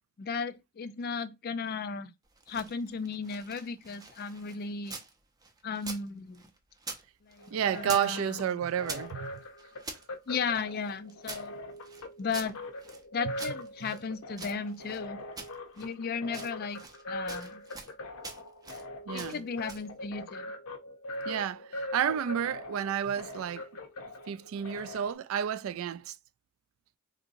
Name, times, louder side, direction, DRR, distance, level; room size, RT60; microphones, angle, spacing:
voice 1, 0.2-2.1 2.5-5.0 5.6-6.4 7.2-8.6 10.3-11.5 12.2-12.6 13.1-15.2 15.8-16.8 17.1-17.6 19.1-20.5, left 5 dB, 45° left, 0.4 m, -35 dB
sound 1, 2.3-5.1 5.4-7.0 7.3-8.1 8.4-10.0 10.6-13.0 13.4-15.0 15.4-15.9 16.2-17.0 17.3-17.9 18.2-18.8 19.2-19.9, right 4 dB, 15° right, 0.5 m, -44 dB
sound 2, 7.4-25.1, left 1 dB, 80° left, 0.7 m, -42 dB
voice 2, 7.5-9.4 13.8-13.9 19.1-19.4 21.3-23.7 24.3-26.2, right 8 dB, 70° right, 0.3 m, -31 dB
3.8 x 2.7 x 2.5 m
head